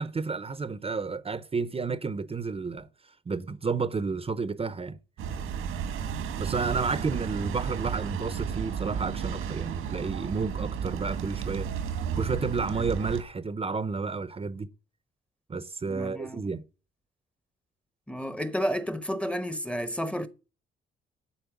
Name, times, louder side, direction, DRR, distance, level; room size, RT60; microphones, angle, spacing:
voice 1, 0.0-2.9 3.3-5.0 6.4-11.7 12.2-14.7 15.5-16.6, right 4 dB, 30° right, 0.8 m, -31 dB
sound 1, 5.2-13.2, right 7 dB, 85° right, 2.0 m, -33 dB
voice 2, 15.9-16.4 18.1-20.3, equal, 5° left, 1.0 m, -31 dB
11.5 x 4.4 x 7.1 m
cardioid pair, 85°, 21 cm